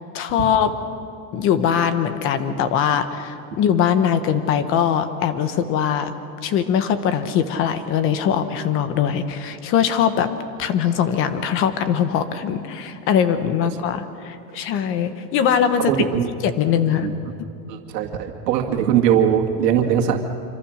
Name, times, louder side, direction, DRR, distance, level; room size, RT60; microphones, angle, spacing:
voice 1, 0.1-0.7 1.3-6.1 6.4-10.3 10.6-16.1 16.4-17.1, left 8 dB, 25° left, 10 dB, 1.1 m, -21 dB
voice 2, 15.9-16.3 17.0-17.1 17.7-20.2, right 9 dB, 85° right, 3 dB, 2.2 m, -20 dB
26.5 x 25.0 x 6.5 m, 2.7 s
supercardioid pair, 175°, 48 cm